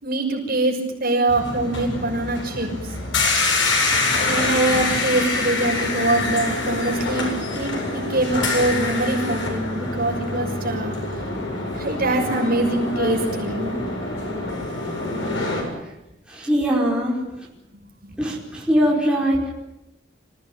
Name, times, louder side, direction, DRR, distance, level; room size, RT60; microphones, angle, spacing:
voice 1, 0.0-2.9 4.3-7.3 7.5-11.0 11.7-13.7 18.0-18.4, right 2 dB, 50° right, 1 dB, 6.3 m, -23 dB
sound 1, 1.3-15.6, left 3 dB, 85° left, 7.8 m, -25 dB
voice 2, 16.3-17.2 18.2-19.5, equal, 5° right, -3 dB, 4.8 m, -21 dB
26.0 x 17.5 x 9.3 m, 0.92 s
head